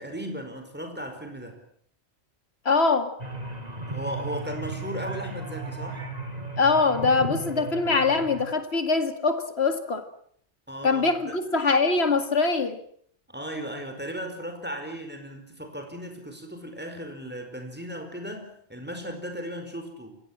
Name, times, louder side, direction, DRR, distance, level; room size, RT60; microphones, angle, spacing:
voice 1, 0.0-1.6 3.9-6.1 10.7-11.4 13.3-20.2, equal, 10° right, 4.9 m, -36 dB
voice 2, 2.7-3.1 6.6-10.0 10.8-12.8, left 4 dB, 65° left, 2.4 m, -23 dB
sound 1, 3.2-8.4, right 2 dB, 35° right, 3.1 m, -35 dB
28.5 x 17.0 x 7.5 m
omnidirectional pair, 1.2 m